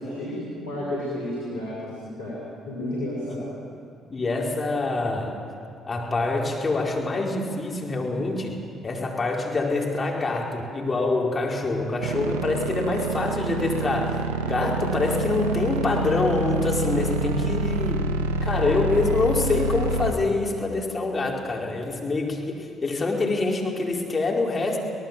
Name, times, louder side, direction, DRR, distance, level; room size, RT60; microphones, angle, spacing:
voice 1, 0.0-2.4 2.7-3.4, left 1 dB, 90° left, -7 dB, 5.6 m, -31 dB
voice 2, 4.1-5.4 5.9-18.1 18.4-24.8, left 3 dB, 35° left, -1 dB, 4.7 m, -25 dB
sound 1, 12.0-20.1, right 3 dB, 85° right, 1.5 m, -27 dB
25.5 x 18.5 x 7.6 m, 2.5 s
hypercardioid pair, 50°, 0 cm